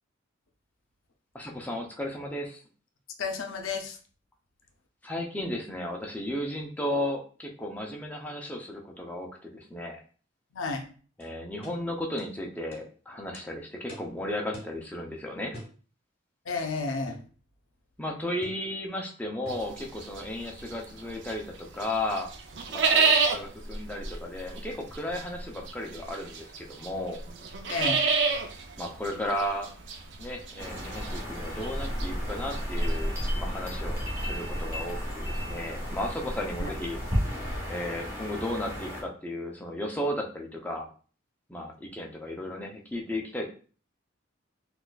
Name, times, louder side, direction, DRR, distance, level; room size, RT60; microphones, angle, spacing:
voice 1, 1.3-2.6 5.0-10.0 11.2-15.6 18.0-22.3 22.7-27.2 28.8-29.7 30.2-37.0 37.7-40.9 41.5-43.4, left 1 dB, 10° left, 0 dB, 0.4 m, -34 dB
voice 2, 3.2-4.0 10.5-10.8 16.5-17.2 27.7-28.1 36.6-36.7, left 4 dB, 80° left, 3 dB, 0.5 m, -31 dB
sound 1, 11.2-11.3 11.6-11.8 12.2-12.3 12.7-12.9 13.3-13.5 13.9-14.1 14.5-14.8 15.5-15.8 17.1-17.3 18.4-18.7 19.5-19.7, equal, 25° left, 0.8 m, -45 dB
sound 2, 19.5-21.5 21.8-33.3, right 5 dB, 60° right, 0.5 m, -29 dB
sound 3, 30.6-39.0, equal, 15° right, 0.9 m, -32 dB
4.0 x 2.4 x 2.3 m, 0.40 s
head